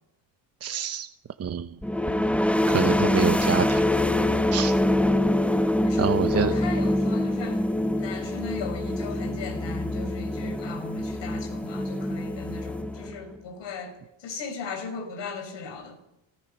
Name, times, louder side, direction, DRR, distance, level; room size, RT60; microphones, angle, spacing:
voice 1, 0.6-1.1 1.4-1.8 2.7-3.8 4.5-4.7 6.0-6.5, right 7 dB, 30° right, 1.0 m, -26 dB
sound 1, 1.8-13.4, left 1 dB, 5° left, 0.9 m, -25 dB
voice 2, 5.9-7.6 7.9-16.0, left 4 dB, 65° left, 5.9 m, -37 dB
28.0 x 20.0 x 5.6 m
cardioid pair, 105°, 47 cm